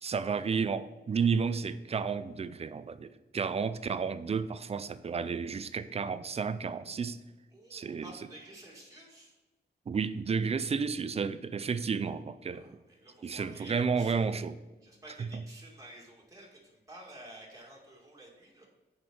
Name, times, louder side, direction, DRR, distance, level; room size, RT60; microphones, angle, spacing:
voice 1, 0.0-7.2 7.7-8.1 9.9-12.6 13.2-14.5 15.2-15.3, right 5 dB, 35° right, 0.4 m, -32 dB
voice 2, 7.5-9.4 12.5-14.4 14.8-18.7, right 1 dB, 20° right, 1.9 m, -51 dB
6.9 x 5.2 x 6.0 m
wide cardioid pair, 145°, 17 cm